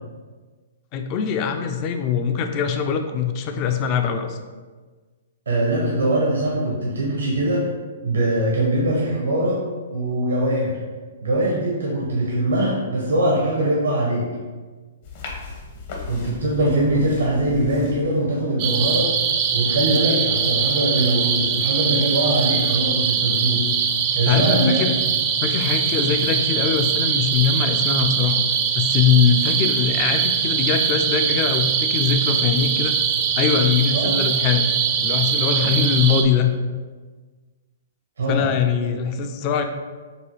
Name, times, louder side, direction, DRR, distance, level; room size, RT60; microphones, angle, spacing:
voice 1, 0.9-4.4 24.3-25.0 25.4-28.4 28.7-33.0 33.4-34.7 35.0-36.5 38.3-39.6, left 7 dB, 35° left, 6 dB, 0.5 m, -22 dB
voice 2, 5.5-7.6 8.0-9.6 9.9-10.7 11.2-14.3 16.1-19.1 19.5-23.6 24.1-24.9 33.9-34.2 35.6-35.8 38.2-38.5 38.8-38.9, right 1 dB, 80° right, -4 dB, 1.0 m, -22 dB
sound 1, 15.0-18.0, left 4 dB, 55° left, 1.1 m, -36 dB
sound 2, 18.6-36.2, right 7 dB, 45° right, 0.5 m, -22 dB
6.7 x 2.3 x 3.2 m, 1.4 s
hypercardioid pair, 120°, 0 cm